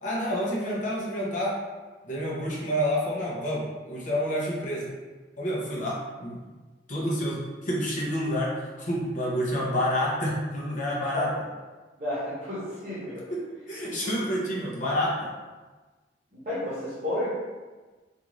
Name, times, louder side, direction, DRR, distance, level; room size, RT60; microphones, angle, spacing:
voice 1, 0.0-1.6 2.0-4.9 5.4-6.4 6.9-11.3 13.3-15.3, equal, 40° left, -5 dB, 0.7 m, -29 dB
voice 2, 12.0-13.2 14.0-14.5 16.3-17.3, left 1 dB, 40° right, -11 dB, 0.9 m, -32 dB
2.5 x 2.4 x 3.0 m, 1.3 s
head